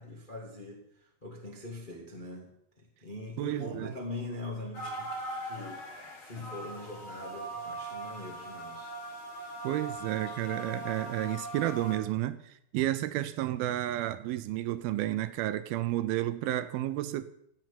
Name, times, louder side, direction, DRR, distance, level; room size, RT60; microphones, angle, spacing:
voice 1, 0.0-2.5 2.8-8.9, left 2 dB, 85° left, 0.4 m, -42 dB
voice 2, 3.4-3.9 9.6-17.2, right 14 dB, 80° right, 2.2 m, -31 dB
sound 1, 4.7-12.0, right 1 dB, 60° left, 5.5 m, -40 dB
16.0 x 6.0 x 9.3 m
omnidirectional pair, 5.0 m